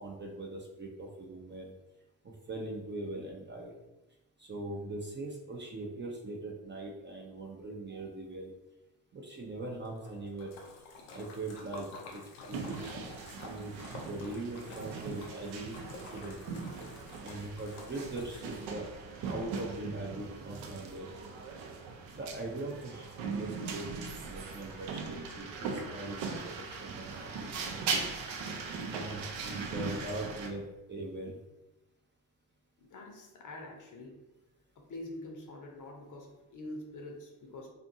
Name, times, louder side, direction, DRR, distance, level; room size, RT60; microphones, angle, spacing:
voice 1, 0.0-1.7 2.5-3.7 4.4-8.5 9.1-10.5 11.1-12.9 13.4-13.7 14.0-15.8 16.1-16.4 17.2-18.9 19.3-21.0 22.1-26.2 26.4-28.1 28.9-31.4, right 2 dB, 25° right, -1 dB, 0.5 m, -41 dB
Splash splatter, 9.9-19.0, left 3 dB, 75° left, 0.7 m, -50 dB
sound 1, 12.5-30.5, right 5 dB, 70° right, 0.6 m, -40 dB
voice 2, 32.8-34.2 34.9-37.7, left 1 dB, 40° left, 1 dB, 0.7 m, -45 dB
2.6 x 2.5 x 2.6 m, 1.0 s
hypercardioid pair, 45°, 47 cm